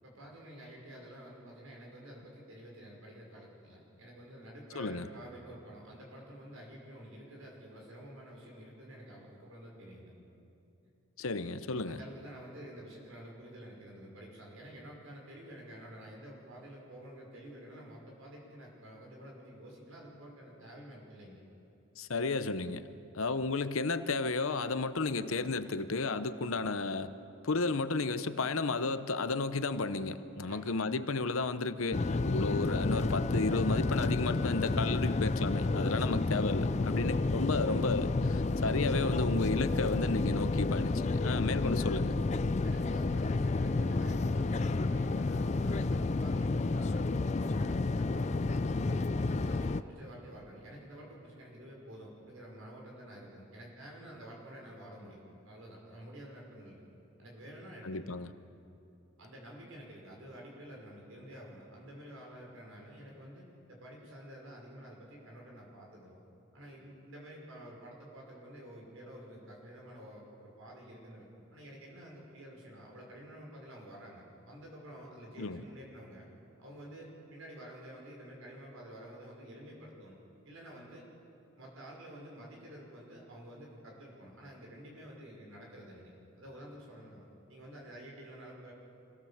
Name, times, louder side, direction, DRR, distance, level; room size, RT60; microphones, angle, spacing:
voice 1, 0.0-10.1 11.9-21.4 30.4-30.8 42.6-56.9 57.2-58.1 59.2-66.2 66.5-76.3 76.6-80.2 80.4-81.1 81.6-86.1 86.4-88.7, equal, 70° right, -2 dB, 5.8 m, -50 dB
voice 2, 4.7-5.1 11.2-12.0 22.0-22.9 23.1-27.1 27.4-42.2 57.8-58.3 75.4-75.6, left 3 dB, 70° left, 11 dB, 0.8 m, -33 dB
sound 1, 31.9-49.8, left 3 dB, 30° left, 0.4 m, -30 dB
26.0 x 17.0 x 7.3 m, 2.7 s
head